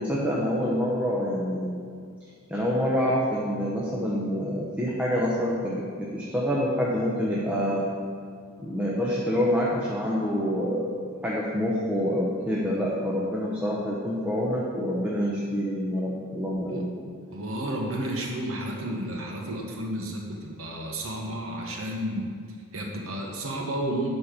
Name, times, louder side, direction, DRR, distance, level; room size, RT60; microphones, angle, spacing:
voice 1, 0.0-1.8 2.5-7.9 8.6-10.9 11.2-16.9, equal, 5° right, -5 dB, 0.9 m, -27 dB
voice 2, 17.3-22.3 22.7-24.1, right 1 dB, 70° right, 0 dB, 1.1 m, -32 dB
11.0 x 4.4 x 5.1 m, 2.1 s
head